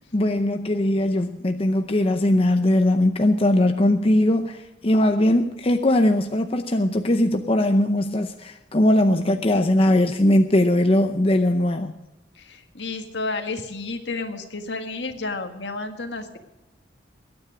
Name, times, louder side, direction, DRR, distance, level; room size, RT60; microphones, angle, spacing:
voice 1, 0.1-11.9, left 1 dB, 30° left, 6 dB, 0.7 m, -20 dB
voice 2, 12.4-16.4, left 3 dB, 70° left, 6 dB, 1.8 m, -31 dB
22.0 x 9.7 x 5.0 m, 1.0 s
head